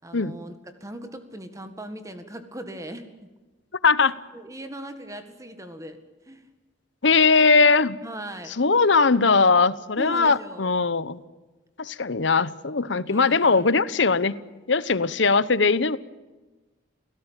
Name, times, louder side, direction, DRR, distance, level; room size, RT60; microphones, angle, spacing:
voice 1, 0.0-0.5 0.8-3.3 4.3-6.0 6.3-6.5 8.0-8.6 10.0-10.7 13.1-13.8, right 1 dB, 15° right, 8 dB, 1.8 m, -39 dB
voice 2, 3.8-4.1 7.0-8.0 8.6-11.2 11.8-14.3 14.7-16.0, left 4 dB, 70° left, 17 dB, 1.0 m, -20 dB
28.0 x 17.0 x 9.1 m, 1.2 s
head